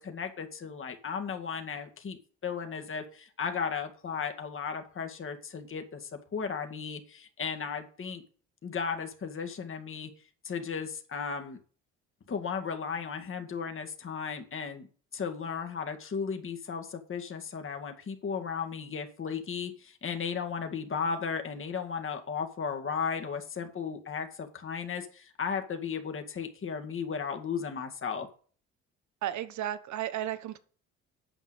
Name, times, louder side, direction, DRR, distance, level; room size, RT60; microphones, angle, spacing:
voice 1, 0.0-8.2 8.6-10.1 10.4-11.6 12.3-14.9 15.1-28.3, left 6 dB, 40° left, 5 dB, 2.1 m, -35 dB
voice 2, 29.2-30.6, right 12 dB, 65° right, 13 dB, 1.3 m, -33 dB
9.1 x 5.7 x 8.0 m, 0.43 s
supercardioid pair, 65°, 31 cm